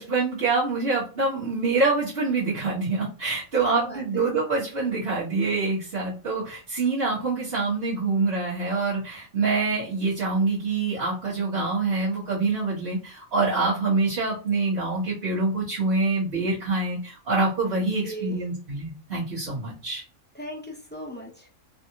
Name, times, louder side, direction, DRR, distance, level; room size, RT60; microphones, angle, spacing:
voice 1, 0.0-20.0, right 3 dB, 45° right, -11 dB, 1.6 m, -25 dB
voice 2, 3.6-4.2 17.8-18.4 20.3-21.5, right 1 dB, 15° left, -1 dB, 0.3 m, -38 dB
3.4 x 2.5 x 2.8 m, 0.37 s
omnidirectional pair, 1.4 m